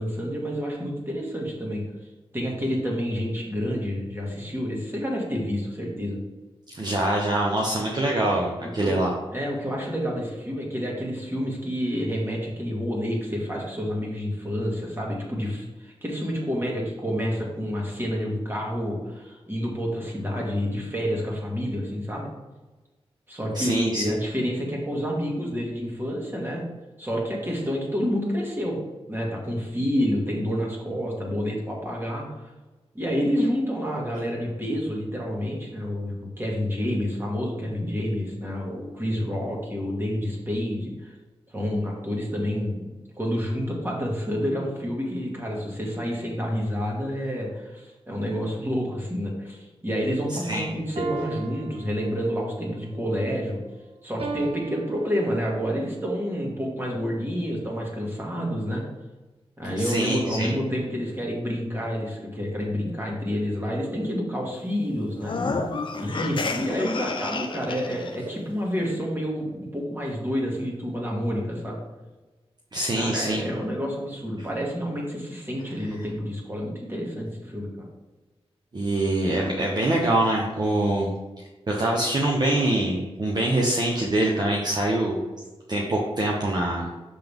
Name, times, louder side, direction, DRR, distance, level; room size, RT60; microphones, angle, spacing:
voice 1, 0.0-1.8 2.3-6.2 8.8-22.3 23.3-26.6 27.0-28.8 29.1-32.5 32.9-41.1 41.5-53.6 54.0-58.8 59.6-65.4 66.0-71.8 72.9-77.9 80.7-80.8, equal, 20° right, -2 dB, 2.2 m, -29 dB
voice 2, 6.7-9.1 23.5-24.1 50.4-50.7 59.8-60.5 72.7-73.4 78.7-81.1 81.7-85.2 85.7-86.9, right 1 dB, 45° right, -2 dB, 1.0 m, -24 dB
sound 1, 51.0-52.5 54.2-55.7, right 4 dB, 65° right, 0.7 m, -35 dB
sound 2, 65.2-68.2, left 3 dB, 50° left, 0.7 m, -30 dB
6.7 x 5.9 x 3.6 m, 1.2 s
wide cardioid pair, 95°, 10 cm